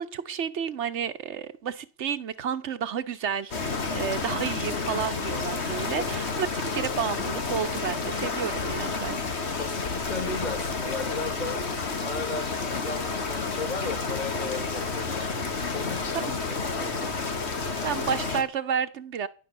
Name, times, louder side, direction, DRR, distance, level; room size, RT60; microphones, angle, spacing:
voice 1, 0.0-9.2 17.8-19.3, right 8 dB, 85° right, 1.3 m, -31 dB
sound 1, 3.5-18.4, left 4 dB, 70° left, 2.0 m, -30 dB
voice 2, 9.5-15.4 15.7-17.2, left 3 dB, 40° left, 2.2 m, -36 dB
17.5 x 10.5 x 7.0 m
omnidirectional pair, 1.2 m